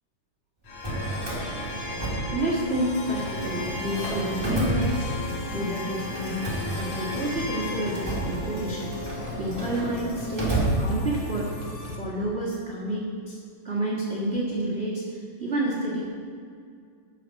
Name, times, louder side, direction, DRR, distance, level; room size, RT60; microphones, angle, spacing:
Drawer open or close, 0.6-2.8 3.1-5.5 6.1-11.4, right 1 dB, 10° right, 1.1 m, -31 dB
sound 1, 0.7-11.7, left 2 dB, 85° left, 3.9 m, -37 dB
voice 1, 2.3-5.1 5.5-11.5 11.9-13.4 13.6-16.1, right 1 dB, 70° right, -5 dB, 0.6 m, -29 dB
sound 2, 2.7-12.0, left 3 dB, 60° left, 2.6 m, -39 dB
12.0 x 5.9 x 6.5 m, 2.3 s
omnidirectional pair, 4.1 m